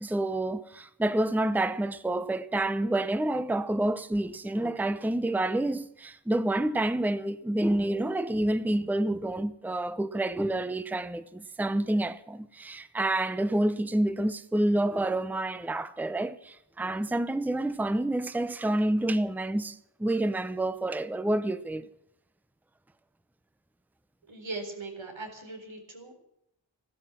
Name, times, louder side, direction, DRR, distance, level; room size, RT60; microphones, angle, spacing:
voice 1, 0.0-21.9, right 1 dB, 5° right, 0.7 m, -28 dB
voice 2, 24.3-26.2, right 2 dB, 85° right, 4.2 m, -40 dB
14.5 x 12.5 x 7.6 m
wide cardioid pair, 65°, 45 cm